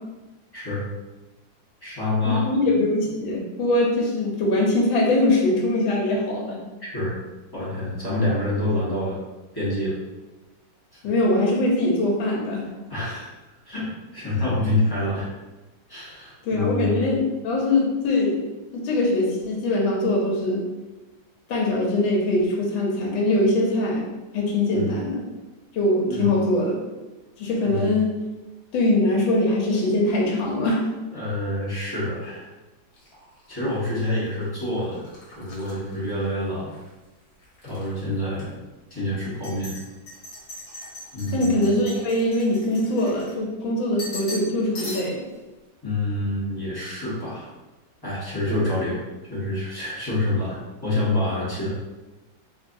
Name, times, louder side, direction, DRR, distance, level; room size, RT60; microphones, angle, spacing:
voice 1, 0.5-0.9 1.8-2.5 6.8-7.1 7.5-9.1 9.5-10.0 12.9-13.3 13.6-15.3 15.9-17.0 24.7-24.9 26.1-26.4 27.6-28.0 31.1-32.5 33.5-36.7 37.6-38.5 38.9-39.8 41.1-41.7 45.8-47.5 48.0-49.0 49.3-51.7, left 1 dB, 15° left, -10 dB, 0.8 m, -27 dB
voice 2, 2.2-6.6 11.0-12.7 16.4-18.4 18.7-20.7 21.5-24.0 24.3-25.2 25.7-26.7 27.4-28.1 28.7-30.8 41.3-45.2 48.5-48.6, left 1 dB, 85° left, -1 dB, 1.6 m, -22 dB
sound 1, 32.9-36.9 37.2-37.9 38.3-38.4 39.2-43.6 44.0-44.5 44.7-45.3, left 1 dB, 55° left, 1.5 m, -40 dB
3.8 x 3.2 x 2.6 m, 1.1 s
omnidirectional pair, 2.1 m